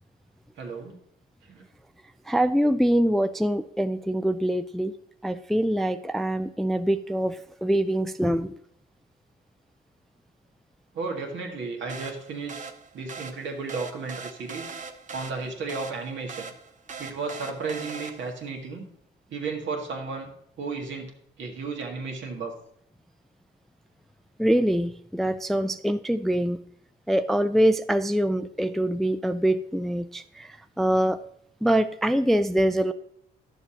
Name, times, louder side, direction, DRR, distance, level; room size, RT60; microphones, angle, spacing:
voice 1, 0.6-1.0 1.5-1.6 10.9-12.6 12.9-14.8 15.1-16.5 17.0-18.8 19.3-20.3 20.6-21.1 21.4-22.5, right 4 dB, 70° right, 0 dB, 1.9 m, -33 dB
voice 2, 2.3-4.9 5.2-8.5 24.4-26.6 27.1-31.2 31.6-32.9, right 1 dB, ahead, 10 dB, 0.3 m, -24 dB
sound 1, 11.9-18.5, right 5 dB, 40° right, 0.9 m, -41 dB
11.5 x 6.8 x 2.9 m, 0.69 s
cardioid pair, 90°, 20 cm